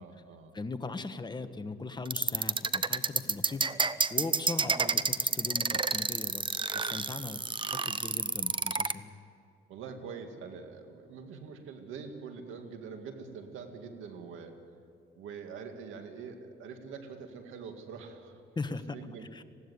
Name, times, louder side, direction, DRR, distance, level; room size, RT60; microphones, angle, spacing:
voice 1, 0.0-0.5 1.4-1.5 4.6-4.7 9.7-14.6 15.2-18.4 18.9-19.4, right 5 dB, 90° right, 6 dB, 2.2 m, -44 dB
voice 2, 0.5-3.7 4.1-6.5 6.7-9.2 18.5-19.0 19.3-19.4, left 3 dB, 20° left, 9 dB, 1.3 m, -39 dB
sound 1, 2.1-8.9, right 4 dB, 25° right, 0.8 m, -29 dB
20.0 x 16.0 x 9.6 m, 2.5 s
cardioid pair, 90°, 20 cm